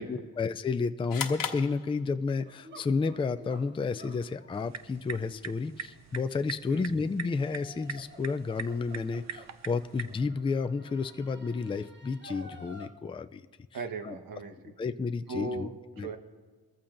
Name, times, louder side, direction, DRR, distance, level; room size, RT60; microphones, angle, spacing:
voice 1, 0.0-13.4 14.0-14.2 14.8-15.7 16.0-16.1, left 4 dB, 15° left, 9 dB, 0.3 m, -31 dB
sound 1, 1.1-2.5, left 7 dB, 60° left, 1.2 m, -36 dB
sound 2, 2.4-12.9, equal, 30° right, 1.3 m, -52 dB
sound 3, 4.5-10.2, right 7 dB, 45° right, 0.5 m, -43 dB
voice 2, 13.7-14.7 15.3-16.2, right 3 dB, 60° right, 6 dB, 1.3 m, -38 dB
23.0 x 14.5 x 2.6 m, 1.5 s
wide cardioid pair, 120°, 38 cm